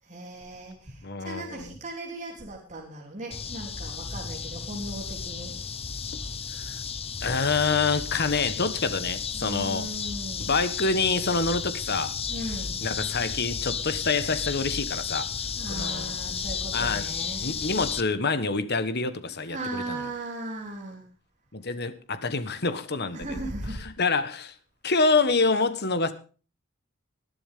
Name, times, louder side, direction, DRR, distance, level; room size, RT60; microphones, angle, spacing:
voice 1, 0.1-5.6 9.4-10.5 12.3-12.8 15.6-17.7 19.5-21.0 23.1-23.9, right 2 dB, 35° right, -1 dB, 3.3 m, -37 dB
voice 2, 1.0-1.8 6.6-6.8 7.2-9.9 10.4-12.1 12.8-15.3 15.7-16.1 16.7-17.1 17.4-20.1 21.5-24.5 24.8-26.1, left 4 dB, 50° left, 12 dB, 1.4 m, -27 dB
sound 1, 3.3-18.0, left 6 dB, 25° left, 0.7 m, -33 dB
20.0 x 11.0 x 3.7 m, 0.37 s
head